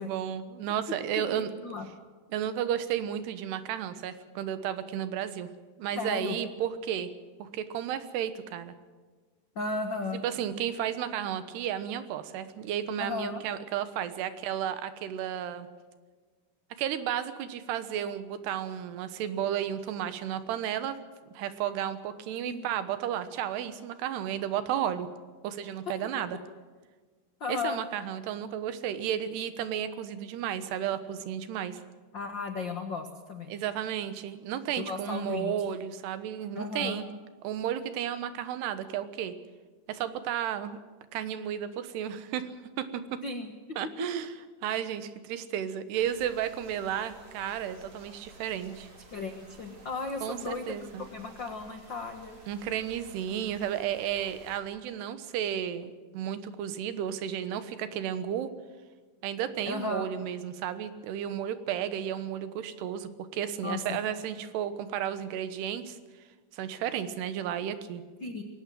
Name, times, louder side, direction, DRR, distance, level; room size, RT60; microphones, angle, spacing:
voice 1, 0.0-1.5 2.3-5.5 5.8-7.1 7.4-8.7 10.2-15.7 16.8-21.0 21.3-25.1 25.4-26.4 27.5-31.8 33.5-37.1 37.4-39.3 39.9-40.8 41.1-42.5 42.8-43.2 43.8-48.9 50.2-51.0 52.5-58.5 59.2-66.0 66.5-68.0, right 10 dB, 85° right, 11 dB, 3.3 m, -33 dB
voice 2, 1.3-1.9 5.9-6.4 9.5-10.2 13.0-13.4 22.4-22.6 27.4-27.8 32.1-33.5 34.8-35.7 36.6-37.0 43.2-43.8 49.1-52.4 59.7-60.1 63.6-64.0 68.2-68.4, left 3 dB, 85° left, 5 dB, 1.0 m, -35 dB
sound 1, 45.9-54.6, right 2 dB, 40° right, 4.7 m, -53 dB
21.0 x 18.0 x 7.7 m, 1.4 s
omnidirectional pair, 4.6 m